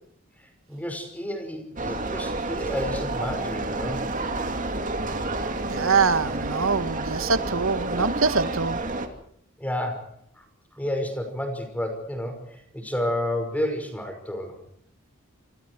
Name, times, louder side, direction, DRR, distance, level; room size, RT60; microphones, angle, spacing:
voice 1, 0.7-4.1 9.6-10.5 10.7-14.6, left 1 dB, 5° left, 5.6 m, -31 dB
sound 1, 1.8-9.1, right 2 dB, 40° right, 2.7 m, -29 dB
voice 2, 5.6-8.8, right 5 dB, 65° right, 1.4 m, -24 dB
27.5 x 26.0 x 4.8 m
head